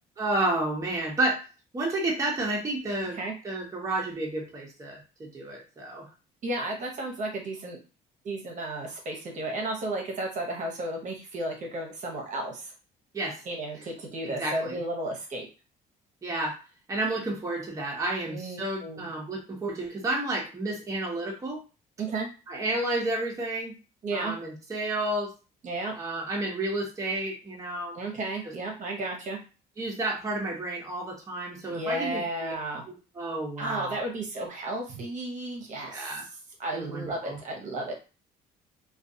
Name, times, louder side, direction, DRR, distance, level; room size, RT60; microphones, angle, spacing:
voice 1, 0.2-1.4 1.7-3.2 3.4-6.1 13.1-13.4 14.2-14.8 16.2-16.6 16.9-21.6 22.5-23.7 24.1-25.3 26.0-28.0 28.4-28.5 29.8-32.5 33.2-34.0 35.8-36.2 36.7-37.4, right 2 dB, 20° right, -2 dB, 0.8 m, -31 dB
voice 2, 6.4-7.8 8.2-12.7 13.5-15.5 18.3-19.1 22.0-22.3 24.0-24.3 25.6-25.9 27.9-29.4 31.7-32.8 33.6-36.2 36.6-37.9, right 2 dB, 45° right, 1 dB, 0.8 m, -33 dB
2.3 x 2.3 x 2.7 m, 0.33 s
cardioid pair, 110°, 17 cm